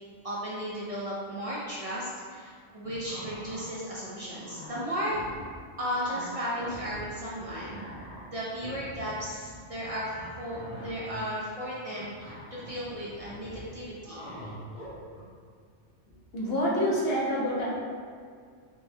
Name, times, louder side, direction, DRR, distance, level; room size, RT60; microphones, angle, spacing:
voice 1, 0.2-5.2 5.8-7.9 8.2-14.3, equal, 50° right, -7 dB, 0.4 m, -35 dB
sound 1, 2.8-3.6 4.0-5.6 5.9-7.0 7.3-15.2, equal, 35° left, 1.2 m, -44 dB
voice 2, 16.3-17.7, equal, 60° left, -5 dB, 1.0 m, -27 dB
4.5 x 2.2 x 2.7 m, 2.1 s
omnidirectional pair, 1.2 m